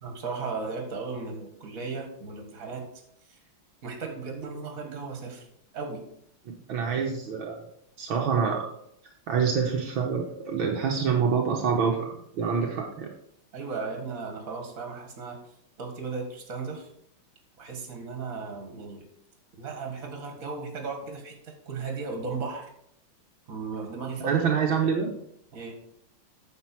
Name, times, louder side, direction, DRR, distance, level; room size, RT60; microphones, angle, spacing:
voice 1, 0.0-2.9 3.3-3.4 3.8-5.4 5.7-6.0 13.5-15.4 15.8-16.9 17.6-19.0 19.6-22.7 23.5-24.4 25.5-25.7, right 4 dB, 40° right, 3 dB, 2.1 m, -36 dB
voice 2, 6.5-7.6 8.0-8.7 9.3-13.1 24.2-25.1, right 6 dB, 70° right, 0 dB, 1.8 m, -26 dB
9.5 x 6.9 x 4.5 m, 0.71 s
omnidirectional pair, 2.3 m